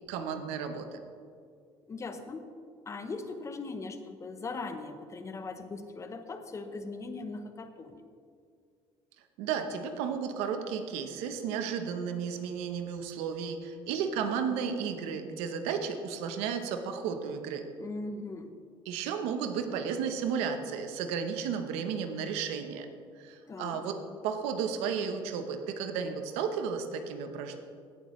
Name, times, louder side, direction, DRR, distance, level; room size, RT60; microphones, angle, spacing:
voice 1, 0.1-1.0 9.4-17.7 18.9-22.9 23.2-24.0 24.2-27.6, right 6 dB, 90° right, 7 dB, 0.9 m, -33 dB
voice 2, 1.9-2.5 2.9-8.0 17.8-18.6 23.5-23.9, left 3 dB, 30° left, 8 dB, 0.8 m, -39 dB
16.5 x 7.3 x 3.2 m, 2.2 s
cardioid pair, 105°, 10 cm